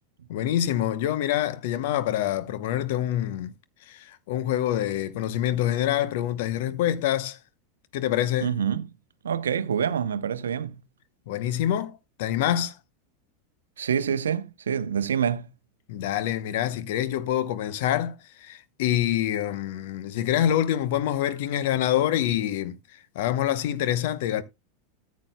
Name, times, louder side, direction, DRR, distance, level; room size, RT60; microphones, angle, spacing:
voice 1, 0.3-3.5 3.9-7.4 7.9-8.6 11.3-12.8 15.9-24.4, left 11 dB, 60° left, 0.9 m, -26 dB
voice 2, 8.4-8.8 9.2-10.8 13.8-15.5, right 8 dB, 75° right, 0.7 m, -26 dB
14.0 x 8.4 x 2.2 m
figure-of-eight pair, 90°, 0 cm